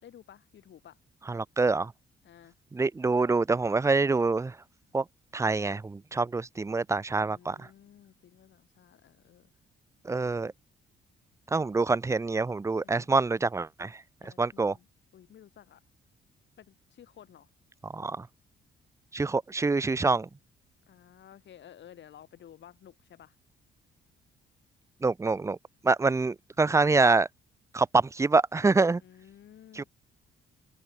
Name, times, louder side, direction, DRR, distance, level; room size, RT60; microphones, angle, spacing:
voice 1, 0.0-1.0 2.2-2.5 7.1-9.5 12.8-13.1 14.2-14.9 15.1-15.8 16.6-17.5 20.9-23.4 29.0-29.9, left 10 dB, 65° left, 4.2 m, -53 dB
voice 2, 1.3-1.9 2.7-4.5 4.9-5.0 5.3-7.7 10.0-10.5 11.5-14.0 14.2-14.7 17.9-18.3 19.1-20.3 25.0-25.6 25.8-27.3 27.7-29.0 29.7-29.8, right 3 dB, 15° right, 0.5 m, -26 dB
open air
cardioid pair, 90°, 20 cm